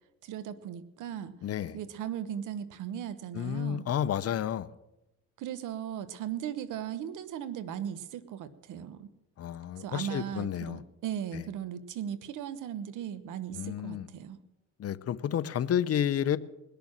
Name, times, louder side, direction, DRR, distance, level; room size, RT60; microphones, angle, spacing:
voice 1, 0.2-1.3 1.7-3.8 5.4-9.1 9.8-14.4, right 9 dB, 85° right, 14 dB, 1.1 m, -37 dB
voice 2, 1.4-1.8 3.3-4.7 9.4-10.8 11.3-11.4 13.5-14.1 14.8-16.4, left 9 dB, 50° left, 15 dB, 0.7 m, -31 dB
20.5 x 6.8 x 7.5 m, 0.96 s
cardioid pair, 90°, 30 cm